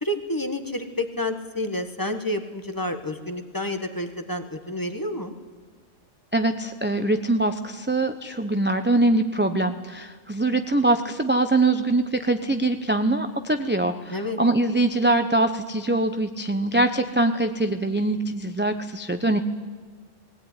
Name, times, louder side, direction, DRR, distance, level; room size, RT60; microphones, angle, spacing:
voice 1, 0.0-5.3 14.1-14.4, left 1 dB, 15° left, 7 dB, 1.3 m, -29 dB
voice 2, 6.3-19.4, right 2 dB, 10° right, 7 dB, 0.6 m, -23 dB
20.0 x 17.5 x 9.8 m, 1.4 s
omnidirectional pair, 1.3 m